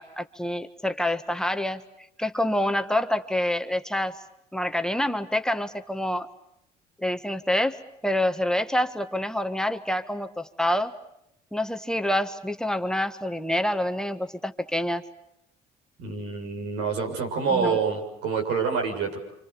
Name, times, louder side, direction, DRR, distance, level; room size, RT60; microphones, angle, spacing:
voice 1, 0.0-1.8 2.2-4.2 4.5-6.3 7.0-7.8 8.0-10.9 11.5-15.0 17.5-17.8, left 1 dB, 5° left, 7 dB, 1.5 m, -27 dB
voice 2, 16.0-19.2, right 5 dB, 90° right, 3 dB, 7.1 m, -27 dB
28.0 x 27.5 x 6.9 m, 0.80 s
cardioid pair, 110°, 17 cm